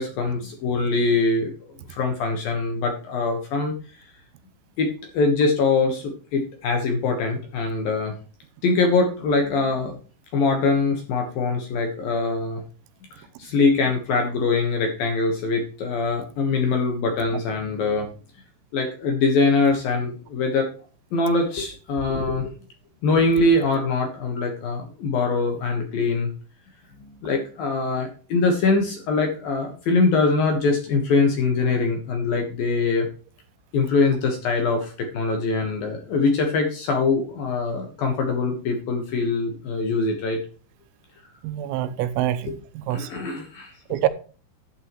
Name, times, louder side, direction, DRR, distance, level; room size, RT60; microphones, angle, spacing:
voice 1, 0.0-3.7 4.8-8.1 8.6-10.0 10.3-12.6 13.4-18.1 18.7-20.7 21.1-22.5 23.0-26.3 27.0-33.1 33.7-40.4 42.4-42.6 42.9-44.0, left 3 dB, 60° left, 2.6 m, -23 dB
voice 2, 41.4-43.1 43.9-44.1, right 12 dB, 85° right, 3.5 m, -25 dB
12.0 x 8.5 x 3.1 m
omnidirectional pair, 5.9 m